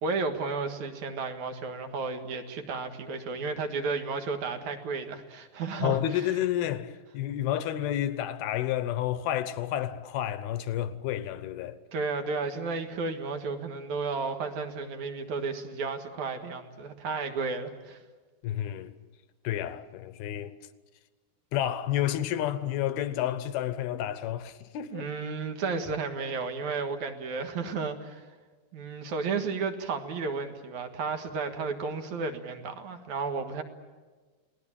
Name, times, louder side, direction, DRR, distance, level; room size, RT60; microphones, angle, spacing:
voice 1, 0.0-6.0 11.9-18.0 24.9-28.2 28.7-33.6, right 4 dB, 55° right, 2.6 m, -33 dB
voice 2, 5.8-11.8 18.4-18.9 19.4-20.5 21.5-25.1, left 12 dB, 75° left, 2.8 m, -30 dB
29.5 x 19.5 x 8.7 m
omnidirectional pair, 4.7 m